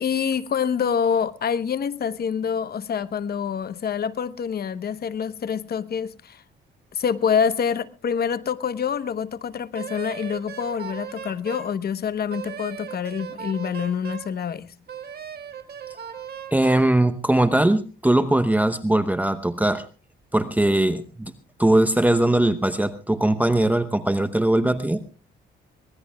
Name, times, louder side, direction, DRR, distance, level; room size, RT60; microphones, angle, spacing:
voice 1, 0.0-6.4 6.9-14.7, left 7 dB, 50° left, 1.0 m, -26 dB
Wind instrument woodwind instrument, 9.7-11.7 12.3-14.3 14.9-16.9, right 8 dB, 50° right, 2.0 m, -37 dB
voice 2, 16.5-19.8 20.3-21.3 21.6-25.1, right 1 dB, 10° right, 0.9 m, -20 dB
24.0 x 18.5 x 2.3 m
cardioid pair, 90°, 20 cm